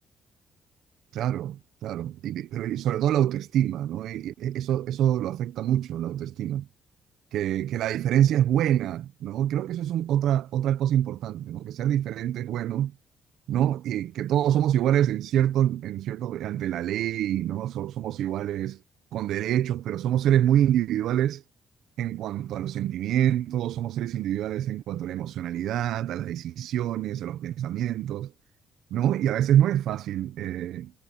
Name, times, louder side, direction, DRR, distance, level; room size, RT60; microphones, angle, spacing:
voice 1, 1.1-6.7 7.3-12.9 13.5-18.8 19.1-21.4 22.0-28.3 28.9-30.9, right 11 dB, 80° right, 1.1 m, -26 dB
cardioid pair, 90°, 0 cm